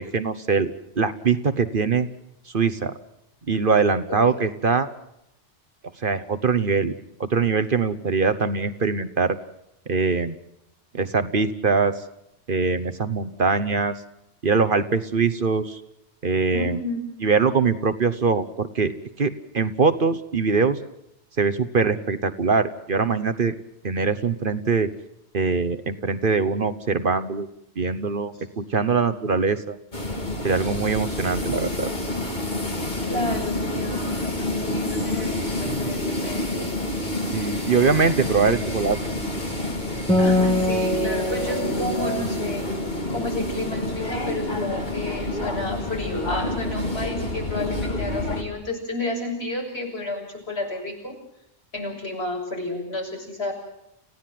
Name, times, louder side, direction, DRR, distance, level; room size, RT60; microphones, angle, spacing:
voice 1, 0.0-2.1 2.5-2.9 3.5-4.9 6.0-6.9 7.2-9.4 9.9-10.3 10.9-11.9 12.5-13.9 14.4-15.8 16.2-16.8 17.2-18.9 19.2-20.8 21.4-23.5 23.8-24.9 25.3-27.5 27.8-29.8 30.4-31.9 37.3-39.0, right 5 dB, 50° right, 11 dB, 1.2 m, -22 dB
voice 2, 4.1-4.5 16.5-17.1 33.1-36.7 40.2-42.6 43.1-51.2 51.7-53.5, left 2 dB, 65° left, 1 dB, 7.2 m, -31 dB
sound 1, 29.9-48.4, left 1 dB, 40° left, 3.1 m, -28 dB
Acoustic guitar, 40.1-43.8, left 1 dB, 5° left, 4.3 m, -25 dB
30.0 x 16.0 x 7.6 m, 0.80 s
omnidirectional pair, 1.2 m